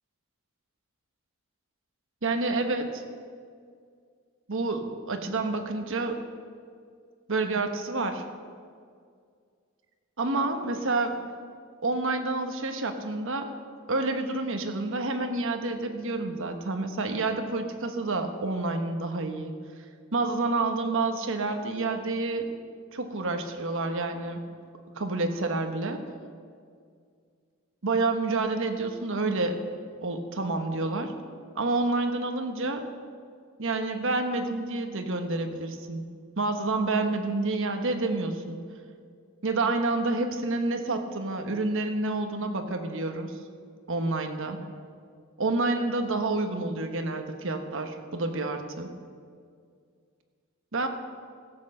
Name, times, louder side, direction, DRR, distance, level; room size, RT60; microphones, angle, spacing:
voice 1, 2.2-3.0 4.5-6.2 7.3-8.2 10.2-11.2 11.8-13.5 13.9-19.5 20.1-22.5 22.9-24.4 25.0-26.0 27.8-29.6 30.0-31.1 31.5-32.8 33.6-36.0 36.4-38.6 39.4-43.3 43.9-44.6 45.4-48.9 50.7-50.9, right 3 dB, 65° right, 6 dB, 1.2 m, -28 dB
16.0 x 7.8 x 6.6 m, 2.2 s
head